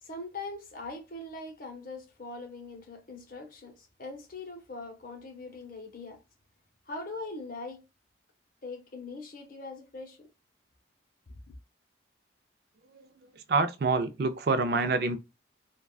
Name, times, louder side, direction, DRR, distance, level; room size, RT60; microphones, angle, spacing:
voice 1, 0.0-6.2 6.9-7.8 8.6-10.3, left 2 dB, 45° left, 0.8 m, -41 dB
voice 2, 13.3-15.2, right 3 dB, 55° right, 0.4 m, -27 dB
3.5 x 2.2 x 2.3 m
head